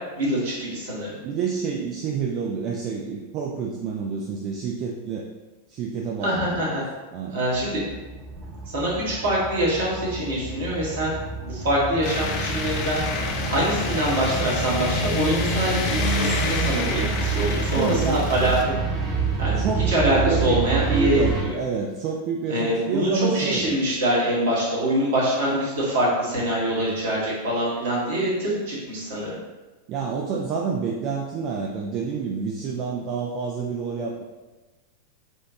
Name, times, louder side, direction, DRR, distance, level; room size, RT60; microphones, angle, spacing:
voice 1, 0.1-1.1 6.2-6.8 7.3-7.8 8.7-11.2 11.4-13.0 13.5-18.6 19.4-21.5 22.5-29.4, right 1 dB, 60° right, -6 dB, 1.2 m, -24 dB
voice 2, 1.2-5.2 5.7-6.8 7.1-7.4 17.7-18.3 19.6-23.8 26.8-27.0 29.9-34.2, right 5 dB, 40° right, -1 dB, 0.3 m, -28 dB
sound 1, 7.5-21.4, right 5 dB, 20° right, 0.8 m, -28 dB
sound 2, 12.0-18.6, left 4 dB, 40° left, 0.4 m, -28 dB
4.3 x 2.2 x 2.7 m, 1.2 s
figure-of-eight pair, 90°, 0 cm